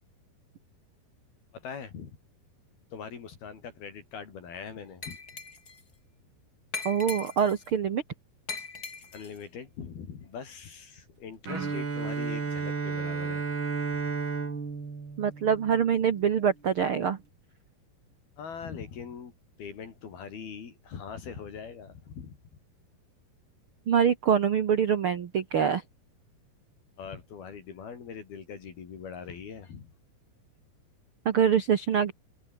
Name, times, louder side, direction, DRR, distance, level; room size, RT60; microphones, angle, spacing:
voice 1, 1.5-2.2 2.9-5.2 9.1-13.5 18.4-19.3 19.6-22.4 27.0-29.9, left 6 dB, 70° left, 5.4 m, -42 dB
Glass, 5.0-5.8 6.7-7.7 8.5-9.4, left 4 dB, 25° left, 2.7 m, -39 dB
voice 2, 6.8-8.0 15.2-17.2 23.9-25.8 31.2-32.1, right 7 dB, 90° right, 1.1 m, -24 dB
Bowed string instrument, 11.5-16.3, right 4 dB, 30° right, 3.7 m, -33 dB
omnidirectional pair, 4.6 m